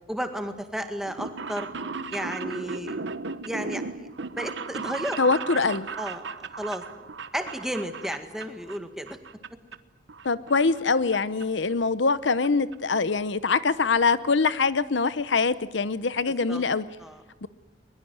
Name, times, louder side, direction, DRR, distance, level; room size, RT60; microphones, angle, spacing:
voice 1, 0.1-1.7 2.1-3.0 3.4-4.1 4.4-5.2 5.6-5.7 6.0-6.2 6.6-6.8 7.3-9.2 16.5-16.6 17.0-17.2, equal, ahead, 7 dB, 1.9 m, -33 dB
sound 1, 1.0-8.8 9.1-9.8 10.1-11.2 11.4-11.5 12.4-12.5 12.7-12.8 13.1-13.2 13.5-13.7 14.1-14.2 14.4-14.5, right 4 dB, 70° right, 1.1 m, -36 dB
voice 2, 5.2-5.9 10.2-16.8 17.4-17.5, left 4 dB, 70° left, 15 dB, 0.8 m, -24 dB
22.0 x 22.0 x 9.5 m, 1.1 s
head